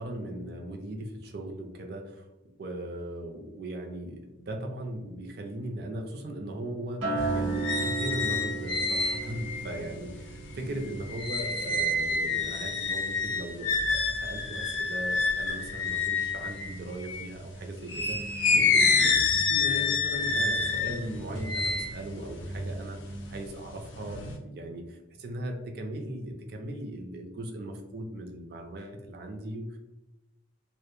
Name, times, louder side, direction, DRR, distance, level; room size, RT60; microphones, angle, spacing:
voice 1, 0.0-2.3 2.6-29.8, right 1 dB, 55° right, 3 dB, 0.4 m, -38 dB
Acoustic guitar, 7.0-11.4 11.8-12.2, right 4 dB, 80° right, 0.8 m, -35 dB
sound 1, 7.2-17.3 17.9-23.4 23.8-24.4, left 3 dB, 75° left, 0.5 m, -28 dB
2.1 x 2.0 x 2.9 m, 1.0 s
head